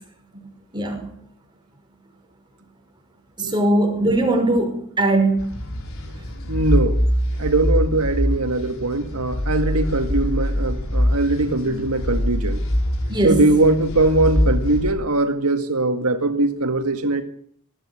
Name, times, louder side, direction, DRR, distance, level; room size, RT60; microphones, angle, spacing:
voice 1, 0.7-1.1 3.4-5.5 13.1-13.4, right 1 dB, 20° right, 3 dB, 5.5 m, -20 dB
sound 1, 5.4-14.9, equal, 65° left, 4.9 m, -23 dB
voice 2, 6.5-7.0 7.4-12.6 13.2-17.2, right 2 dB, 85° right, 7 dB, 1.8 m, -21 dB
20.0 x 14.0 x 9.8 m, 0.63 s
head